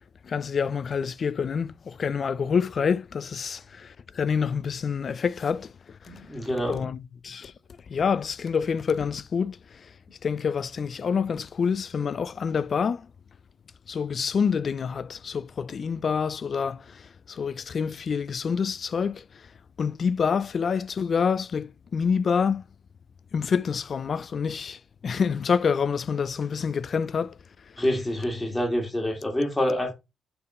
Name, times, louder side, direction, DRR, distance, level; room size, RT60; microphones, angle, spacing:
voice 1, 0.2-5.7 6.6-7.5 7.9-9.9 10.2-13.1 13.9-19.2 19.8-22.6 23.3-27.4, left 6 dB, 45° left, 0.4 m, -27 dB
voice 2, 6.1-6.8 27.8-29.9, left 1 dB, 15° left, 1.8 m, -27 dB
7.0 x 3.6 x 4.8 m
cardioid pair, 90°, 0 cm